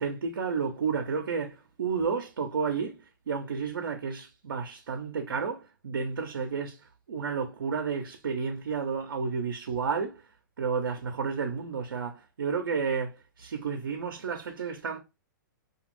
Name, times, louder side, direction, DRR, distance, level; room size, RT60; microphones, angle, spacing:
voice 1, 0.0-3.0 3.3-6.8 7.1-10.2 10.6-15.0, right 5 dB, 85° right, 0.5 m, -31 dB
2.5 x 2.2 x 3.1 m
hypercardioid pair, 130°, 11 cm